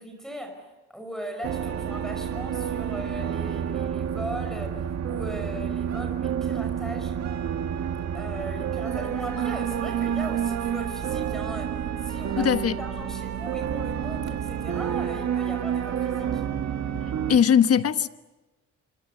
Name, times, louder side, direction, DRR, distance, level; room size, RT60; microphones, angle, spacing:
voice 1, 0.0-7.3 8.1-16.4, right 1 dB, ahead, 5.6 m, -38 dB
sound 1, 1.4-17.4, right 8 dB, 60° right, 1.8 m, -29 dB
voice 2, 12.4-12.8 17.3-18.1, left 8 dB, 50° left, 1.3 m, -20 dB
28.5 x 25.5 x 6.9 m
cardioid pair, 90°, 30 cm